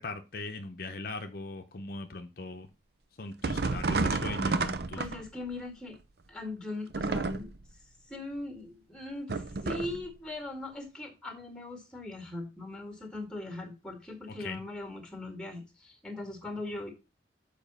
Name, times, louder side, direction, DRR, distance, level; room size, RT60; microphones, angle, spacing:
voice 1, 0.0-2.7 3.2-5.0 14.4-14.6, left 3 dB, 55° left, 5 dB, 0.7 m, -39 dB
sound 1, 3.4-5.5 6.9-7.7 9.3-10.1, right 3 dB, 60° right, 0.6 m, -31 dB
voice 2, 5.0-6.0 6.3-7.5 8.1-16.9, left 2 dB, 5° left, 4 dB, 1.9 m, -40 dB
7.1 x 5.0 x 5.5 m, 0.28 s
head